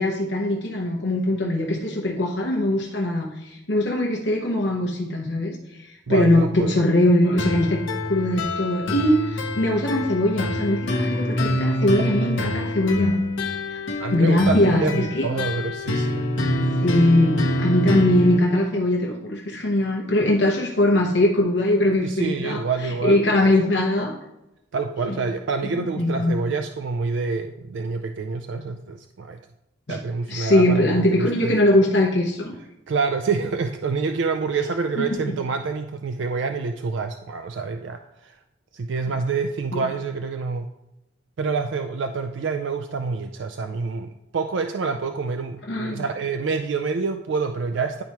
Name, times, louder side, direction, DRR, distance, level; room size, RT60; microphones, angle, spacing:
voice 1, 0.0-7.8 8.0-13.2 13.7-13.8 14.1-15.3 16.8-22.6 23.0-24.1 25.1-25.2 25.6-26.3 29.9-30.0 30.3-32.5 35.0-35.1 39.7-39.8 45.7-46.0, left 1 dB, 65° left, 0 dB, 0.9 m, -21 dB
voice 2, 6.1-6.8 12.0-12.6 14.0-16.3 22.0-23.2 24.7-29.4 29.9-31.5 32.9-38.4 38.7-40.7 41.4-48.0, right 4 dB, 70° right, 6 dB, 0.4 m, -27 dB
sound 1, 7.4-18.4, left 1 dB, 90° left, 0.9 m, -25 dB
10.5 x 4.5 x 2.8 m, 0.92 s
head